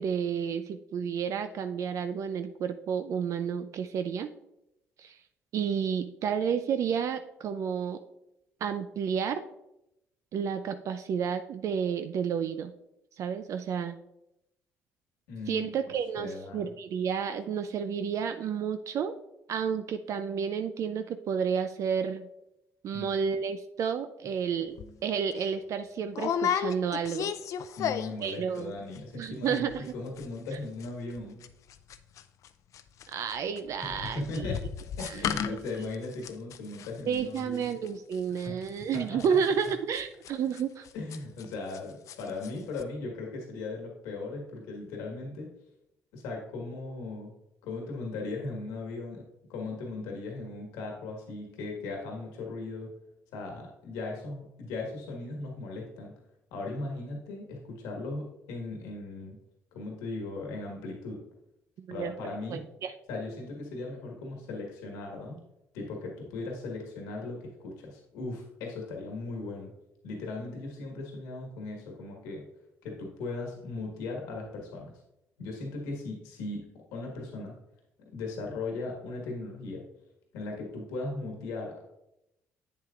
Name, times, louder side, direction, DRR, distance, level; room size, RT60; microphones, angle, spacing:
voice 1, 0.0-4.3 5.0-5.2 5.5-8.0 8.6-9.4 10.3-12.7 13.2-14.0 15.5-19.1 19.5-22.3 22.8-24.8 25.0-27.3 28.2-28.7 29.1-29.9 33.1-34.5 35.0-35.9 37.1-40.9 61.8-62.1 62.5-62.9, right 7 dB, 60° right, 9 dB, 0.4 m, -31 dB
voice 2, 15.3-15.6 16.2-16.7 22.9-23.1 27.8-31.4 33.8-34.6 35.0-37.8 38.4-38.6 38.9-39.4 40.9-45.5 46.1-47.3 47.6-52.9 53.3-56.1 56.5-59.3 59.7-61.2 61.9-62.6 63.1-65.4 65.7-69.7 70.0-72.4 72.8-74.9 75.4-76.6 76.9-77.5 78.1-79.8 80.3-81.8, left 3 dB, 85° left, 0 dB, 1.4 m, -38 dB
sound 1, 24.8-24.9 25.3-25.5 26.1-28.3 28.6-29.0 29.2-29.3 29.5-29.9 30.2-32.5 32.7-41.8 42.1-42.5 42.8-42.9, left 8 dB, 65° left, 0.4 m, -34 dB
8.2 x 7.4 x 2.4 m, 0.86 s
supercardioid pair, 70°, 6 cm